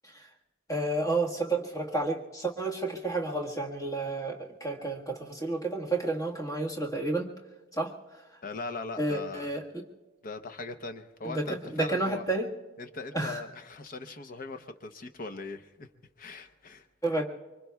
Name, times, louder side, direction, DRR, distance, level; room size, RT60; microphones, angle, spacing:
voice 1, 0.7-7.3 7.8-7.9 9.0-9.6 11.2-12.5 13.1-13.4 17.0-17.2, right 2 dB, 15° left, -1 dB, 1.6 m, -30 dB
voice 2, 8.4-9.5 10.2-12.3 12.8-15.9 16.2-16.9, left 3 dB, 45° left, 7 dB, 0.8 m, -40 dB
25.5 x 24.0 x 2.3 m, 1.2 s
head